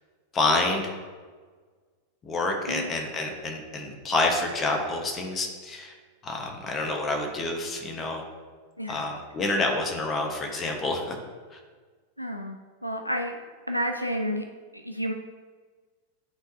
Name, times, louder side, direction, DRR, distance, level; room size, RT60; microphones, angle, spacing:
voice 1, 0.3-1.0 2.2-5.9 6.2-8.2 8.9-11.2 11.5-11.6, left 2 dB, 25° left, 2 dB, 1.2 m, -28 dB
voice 2, 12.2-12.6 12.8-13.4 13.7-14.4 14.7-15.1, equal, 90° left, 5 dB, 0.4 m, -30 dB
11.5 x 3.8 x 2.8 m, 1.5 s
figure-of-eight pair, 90°, 0 cm